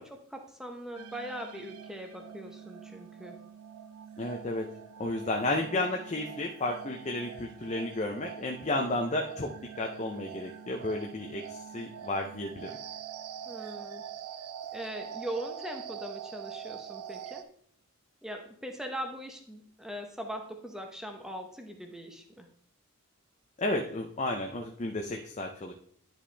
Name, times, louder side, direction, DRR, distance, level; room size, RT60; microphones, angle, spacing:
voice 1, 0.0-3.4 13.5-14.0 14.7-17.4 18.2-22.5, equal, ahead, 4 dB, 0.8 m, -40 dB
sound 1, 0.9-17.4, right 8 dB, 75° right, 0.5 m, -44 dB
voice 2, 4.2-4.7 5.0-9.5 9.8-12.7 23.6-25.7, left 2 dB, 30° left, 2 dB, 0.5 m, -32 dB
10.5 x 5.0 x 3.4 m, 0.63 s
head